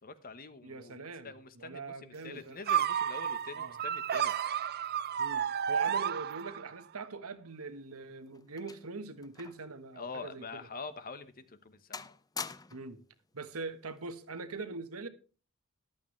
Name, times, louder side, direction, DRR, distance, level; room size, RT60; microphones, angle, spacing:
voice 1, 0.0-4.3 10.0-12.2, left 4 dB, 45° left, 1.1 m, -45 dB
voice 2, 0.6-2.6 3.5-3.8 5.2-10.7 12.7-13.0 13.3-15.1, right 3 dB, 80° right, 1.4 m, -42 dB
sound 1, 2.7-6.8, right 9 dB, 45° right, 0.5 m, -31 dB
sound 2, 7.6-9.7 10.0-10.2 10.8-11.0 11.4-11.7 11.9-13.0 14.0-14.3, left 5 dB, 15° left, 0.5 m, -45 dB
14.5 x 11.5 x 3.2 m
head